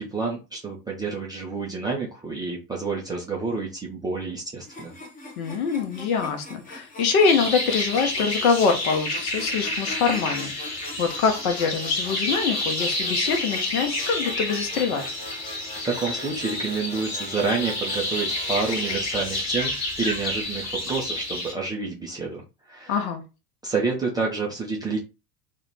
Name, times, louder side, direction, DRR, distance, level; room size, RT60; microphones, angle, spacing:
voice 1, 0.0-4.9 15.8-22.9 23.6-25.0, right 4 dB, 10° right, 0.4 m, -29 dB
sound 1, 4.6-19.0, left 2 dB, 15° left, 0.7 m, -42 dB
voice 2, 5.4-15.0 22.9-23.2, left 5 dB, 60° left, 0.9 m, -24 dB
sound 2, 7.2-21.5, left 1 dB, 35° left, 1.2 m, -29 dB
2.3 x 2.1 x 3.2 m
figure-of-eight pair, 75°, 48 cm